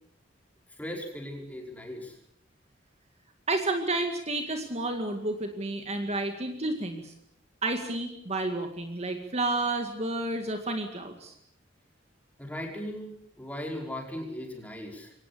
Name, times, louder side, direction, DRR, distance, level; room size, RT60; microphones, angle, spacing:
voice 1, 0.8-2.2 12.4-15.1, left 1 dB, 10° left, 1 dB, 5.3 m, -38 dB
voice 2, 3.5-7.1 7.6-11.3, right 2 dB, 35° right, 5 dB, 2.1 m, -31 dB
24.0 x 18.5 x 8.6 m, 0.72 s
head